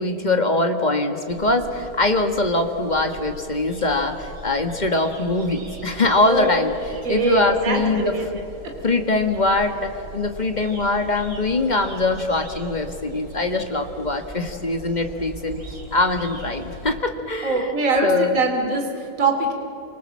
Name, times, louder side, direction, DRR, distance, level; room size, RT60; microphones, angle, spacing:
voice 1, 0.0-6.7 7.1-8.2 8.8-15.6 15.9-17.7 18.0-18.4, left 2 dB, 20° left, 6 dB, 1.6 m, -22 dB
sound 1, 1.3-16.9, right 1 dB, 60° right, 5.3 m, -40 dB
voice 2, 7.0-8.3 17.4-19.5, right 3 dB, 40° right, 4 dB, 2.9 m, -22 dB
28.0 x 25.0 x 7.6 m, 2.9 s
omnidirectional pair, 2.3 m